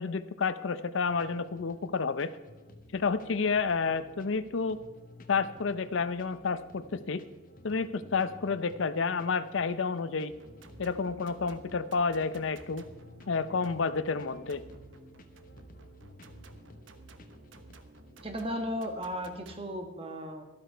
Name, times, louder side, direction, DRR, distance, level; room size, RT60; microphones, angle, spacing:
voice 1, 0.0-2.3 2.9-4.8 5.3-7.2 7.6-10.3 10.8-12.8 13.3-14.6, left 5 dB, 70° left, 14 dB, 0.6 m, -30 dB
sound 1, 1.1-18.2, left 1 dB, 40° left, 1.0 m, -55 dB
sound 2, 10.3-19.6, right 2 dB, 70° right, 1.0 m, -53 dB
voice 2, 18.2-20.4, equal, 25° right, 5 dB, 1.3 m, -35 dB
12.5 x 12.5 x 4.5 m, 1.1 s
head